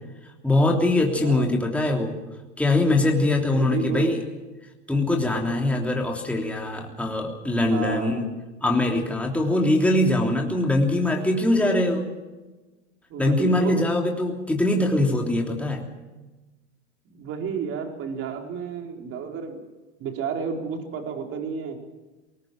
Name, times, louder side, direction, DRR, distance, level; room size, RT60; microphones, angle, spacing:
voice 1, 0.4-2.1 2.6-4.2 4.9-8.3 8.6-12.1 13.2-15.8, left 2 dB, 5° left, 1 dB, 3.2 m, -22 dB
voice 2, 1.2-1.6 3.4-4.2 7.6-8.2 13.1-13.8 17.1-19.7 20.0-21.8, right 6 dB, 40° right, 3 dB, 4.4 m, -31 dB
20.5 x 20.0 x 7.4 m, 1.2 s
hypercardioid pair, 110°, 35 cm